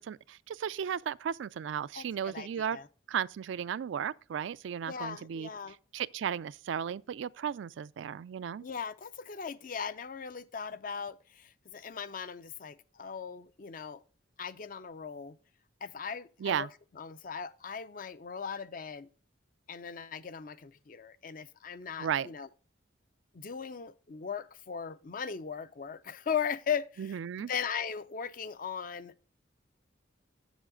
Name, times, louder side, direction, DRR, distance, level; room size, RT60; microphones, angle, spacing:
voice 1, 0.0-2.8 3.1-5.5 5.9-8.6 16.4-16.7 22.0-22.3 27.0-27.5, right 8 dB, 75° right, 0.3 m, -35 dB
voice 2, 1.9-2.9 4.9-5.8 8.6-14.0 14.4-15.4 15.8-16.7 16.9-19.1 19.7-22.5 23.3-29.3, left 7 dB, 45° left, 0.5 m, -38 dB
7.6 x 7.2 x 3.6 m
head